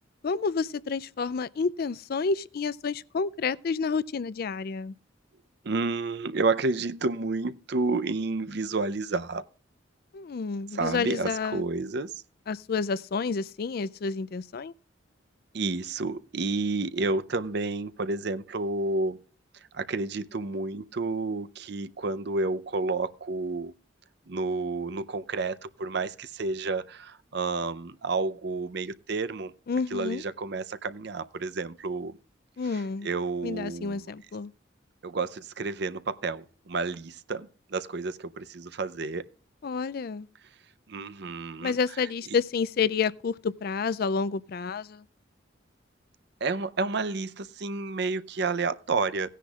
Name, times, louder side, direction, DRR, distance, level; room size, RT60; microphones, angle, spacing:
voice 1, 0.2-4.9 10.1-11.6 12.5-14.7 29.7-30.2 32.6-33.1 33.4-34.5 39.6-40.3 41.6-45.0, left 5 dB, 50° left, 0.4 m, -29 dB
voice 2, 5.6-9.4 10.7-12.2 15.5-19.2 19.7-23.7 24.3-29.5 29.9-32.2 32.7-34.0 35.0-39.3 40.9-41.8 46.4-49.3, right 3 dB, 60° right, 0.6 m, -30 dB
17.5 x 10.0 x 2.4 m
head